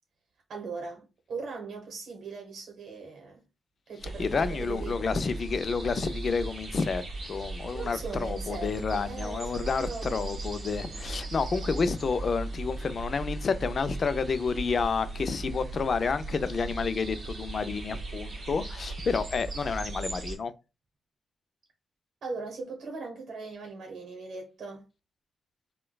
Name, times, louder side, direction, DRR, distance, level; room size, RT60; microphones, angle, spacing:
voice 1, 0.5-3.4 3.9-5.0 7.7-10.3 10.7-11.3 22.2-24.8, right 4 dB, 65° right, 1.0 m, -40 dB
sound 1, 4.0-20.4, right 2 dB, 45° right, 1.2 m, -37 dB
voice 2, 4.2-20.5, left 5 dB, 45° left, 0.4 m, -30 dB
4.4 x 2.2 x 2.2 m
cardioid pair, 120°, 0 cm